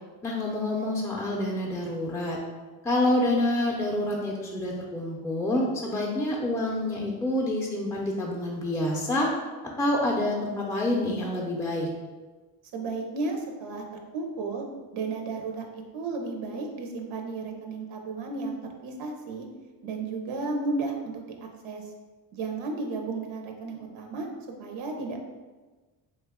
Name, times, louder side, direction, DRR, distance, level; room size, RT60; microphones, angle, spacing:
voice 1, 0.2-2.4 2.8-9.3 9.8-11.9, left 1 dB, 5° left, -3 dB, 0.4 m, -27 dB
voice 2, 12.7-13.8 14.1-14.7 14.9-19.5 19.8-21.8 22.3-24.3 24.6-25.2, right 3 dB, 85° right, 2 dB, 0.6 m, -33 dB
2.8 x 2.2 x 3.4 m, 1.3 s
cardioid pair, 75°, 47 cm